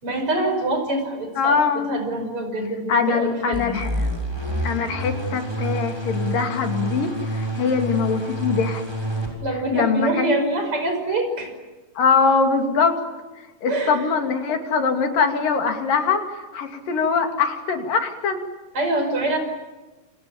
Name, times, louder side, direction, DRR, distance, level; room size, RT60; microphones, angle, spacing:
voice 1, 0.0-3.8 9.4-11.5 13.7-14.1 18.7-19.4, right 2 dB, 40° right, 6 dB, 6.3 m, -25 dB
voice 2, 1.4-1.9 2.9-3.9 4.6-8.8 9.7-10.4 12.0-13.0 13.6-18.4, left 5 dB, 85° left, 5 dB, 4.2 m, -22 dB
sound 1, 3.5-9.3, right 1 dB, 5° right, 6.8 m, -28 dB
29.0 x 28.5 x 7.1 m, 1.2 s
omnidirectional pair, 3.8 m